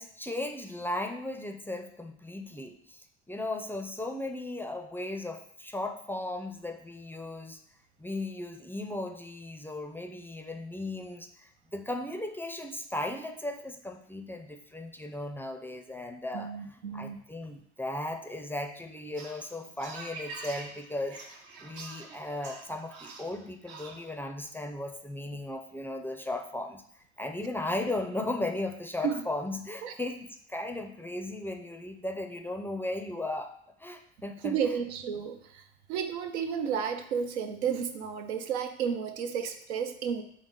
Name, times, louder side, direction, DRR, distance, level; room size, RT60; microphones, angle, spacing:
voice 1, 0.0-7.6 8.0-16.5 16.9-21.2 21.6-26.8 27.2-33.5 33.8-34.6, left 2 dB, 5° left, 6 dB, 0.4 m, -36 dB
voice 2, 16.3-17.2 29.0-29.2 29.8-29.9 34.4-40.2, right 7 dB, 85° right, 7 dB, 0.5 m, -32 dB
sound 1, 19.2-24.1, right 3 dB, 65° right, 0.9 m, -45 dB
3.9 x 3.6 x 3.6 m, 0.66 s
hypercardioid pair, 70°, 33 cm